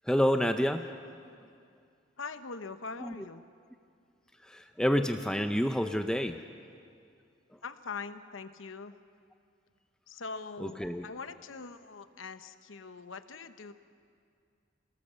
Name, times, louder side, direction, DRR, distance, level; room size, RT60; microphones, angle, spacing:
voice 1, 0.0-0.9 3.0-3.1 4.4-6.4 10.6-11.1, equal, 5° left, 6 dB, 0.5 m, -28 dB
voice 2, 2.2-3.4 7.6-8.9 10.1-13.7, left 4 dB, 90° left, 10 dB, 1.0 m, -42 dB
27.5 x 18.5 x 7.0 m, 2.3 s
head